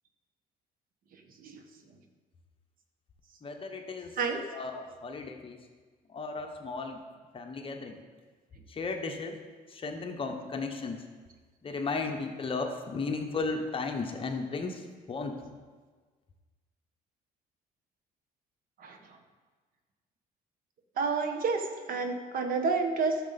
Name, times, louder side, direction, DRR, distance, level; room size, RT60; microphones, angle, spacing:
voice 1, 1.1-1.6 4.2-4.5 18.8-19.2 21.0-23.2, right 4 dB, 55° right, 5 dB, 1.1 m, -30 dB
voice 2, 3.4-4.1 4.5-5.6 6.1-7.0 7.3-7.9 8.7-9.4 9.7-11.0 11.6-14.8 15.1-15.4, left 4 dB, 30° left, 4 dB, 1.1 m, -35 dB
11.5 x 6.7 x 4.2 m, 1.4 s
cardioid pair, 110°, 17 cm